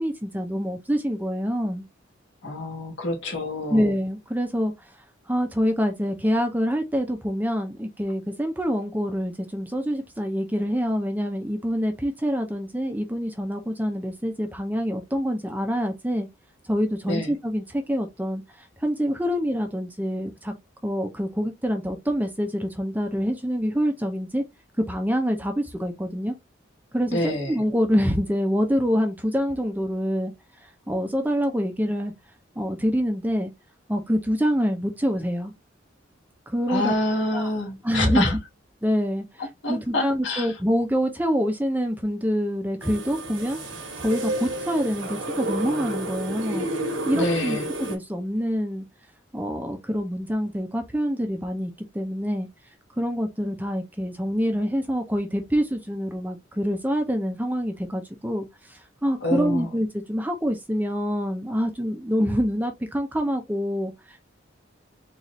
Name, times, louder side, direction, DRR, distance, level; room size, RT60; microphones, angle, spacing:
voice 1, 0.0-1.8 3.7-4.9 5.3-16.3 16.7-18.4 18.8-20.5 20.8-24.4 24.9-26.3 26.9-30.3 30.9-32.1 32.6-33.5 33.9-35.5 36.5-36.9 37.3-37.5 37.8-38.4 38.8-39.4 39.7-43.6 44.0-46.7 47.1-48.8 49.3-52.5 53.0-64.3, equal, 10° right, 0.5 m, -26 dB
voice 2, 2.4-3.9 17.1-17.3 27.1-27.6 36.7-38.3 39.6-40.5 47.1-47.7 59.2-59.7, left 1 dB, 70° left, 1.3 m, -27 dB
sound 1, 42.8-48.0, right 1 dB, 80° right, 1.1 m, -31 dB
4.1 x 2.5 x 3.0 m
head